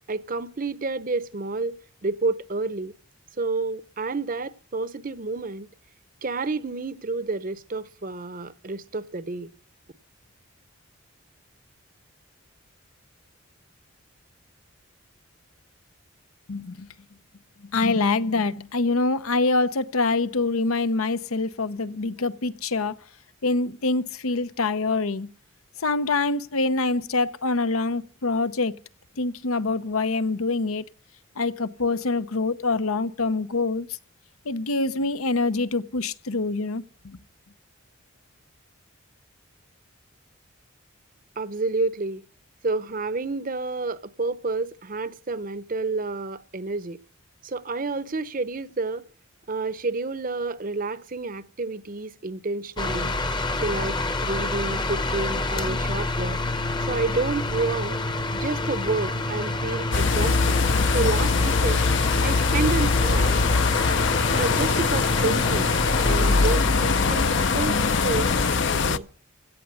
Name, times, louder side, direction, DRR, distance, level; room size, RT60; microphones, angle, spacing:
voice 1, 0.1-2.9 3.4-5.7 6.2-9.5 41.4-42.2 42.6-47.0 47.4-49.0 49.5-53.1 53.6-56.4 56.8-58.0 58.3-60.7 60.9-61.8 62.2-63.4 64.4-65.7 66.0-69.1, right 3 dB, 40° right, 0.7 m, -29 dB
voice 2, 16.5-16.9 17.7-22.9 23.4-25.3 25.8-28.8 29.2-30.8 31.4-33.9 34.5-37.2, left 3 dB, 85° left, 0.8 m, -25 dB
sound 1, 52.8-68.5, left 2 dB, 20° left, 0.8 m, -28 dB
sound 2, 59.9-69.0, left 4 dB, 55° left, 0.6 m, -22 dB
16.5 x 6.8 x 9.6 m
head